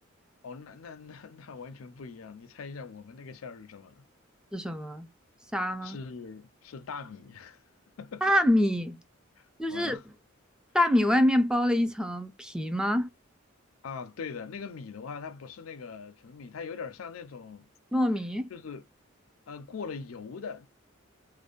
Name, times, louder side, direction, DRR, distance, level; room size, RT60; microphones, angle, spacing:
voice 1, 0.4-4.0 5.8-7.6 8.0-8.3 9.4-10.1 13.8-17.7 18.5-18.8 19.5-20.7, left 5 dB, 85° left, 0.5 m, -42 dB
voice 2, 4.5-5.1 5.5-6.0 8.2-9.0 9.6-10.0 10.7-13.1 17.9-18.5, left 1 dB, 5° right, 0.4 m, -25 dB
2.5 x 2.1 x 2.3 m
head